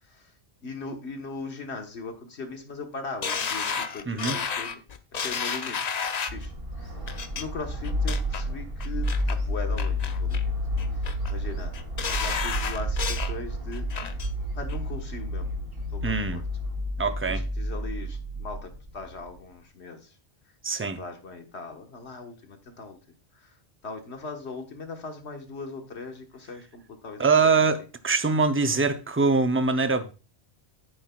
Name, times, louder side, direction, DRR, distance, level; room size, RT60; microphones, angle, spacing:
voice 1, 0.6-4.8 5.1-5.8 6.3-6.5 6.8-7.0 7.3-10.5 10.9-11.7 12.1-13.9 14.5-15.5 15.9-16.4 17.0-20.1 20.7-23.0 23.3-23.5 23.8-27.7, left 4 dB, 80° left, 1.5 m, -39 dB
sound 1, 3.2-6.5 7.1-7.4 7.8-8.4 8.8-9.4 9.8-10.4 10.8-11.3 11.7-13.3 13.7-14.3 14.7-14.8, left 6 dB, 45° left, 0.7 m, -31 dB
voice 2, 4.1-4.4 16.0-16.4 17.0-17.4 20.6-21.0 27.2-30.1, right 4 dB, 20° right, 0.3 m, -23 dB
sound 2, 6.3-19.4, equal, 55° right, 2.6 m, -30 dB
10.0 x 8.7 x 2.3 m
omnidirectional pair, 1.1 m